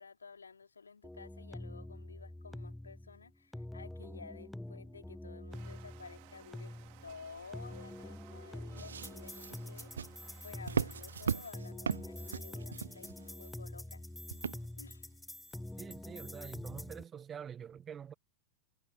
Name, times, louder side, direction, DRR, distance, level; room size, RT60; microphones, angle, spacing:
voice 1, 0.0-6.7 7.0-9.9 10.4-14.0 14.8-15.0, left 5 dB, 80° left, 3.5 m, -53 dB
sound 1, 1.0-17.0, left 1 dB, 5° left, 0.6 m, -46 dB
sound 2, 5.5-11.5, right 32 dB, 50° right, 3.7 m, -59 dB
sound 3, 8.8-13.5 14.3-14.9 15.5-15.6, right 7 dB, 75° right, 0.4 m, -38 dB
voice 2, 15.8-18.1, right 8 dB, 25° right, 1.4 m, -46 dB
figure-of-eight pair, 85°, 0 cm